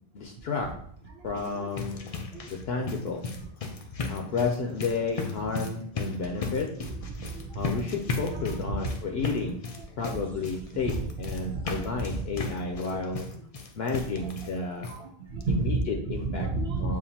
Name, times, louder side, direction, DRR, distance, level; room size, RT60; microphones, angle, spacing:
voice 1, 0.1-0.7 1.2-2.1 2.5-3.2 4.1-6.7 7.5-9.6 10.0-13.3 13.8-14.9 15.5-16.5 16.8-17.0, left 4 dB, 75° left, 2 dB, 0.8 m, -31 dB
sound 1, 1.2-14.6 14.8-15.0 15.4-15.5 15.8-15.9, left 4 dB, 45° left, 0.5 m, -36 dB
voice 2, 7.2-7.6 11.4-11.7 14.9-15.7 16.4-17.0, right 3 dB, 75° right, 0 dB, 0.8 m, -31 dB
7.0 x 2.5 x 2.7 m, 0.65 s
omnidirectional pair, 1.1 m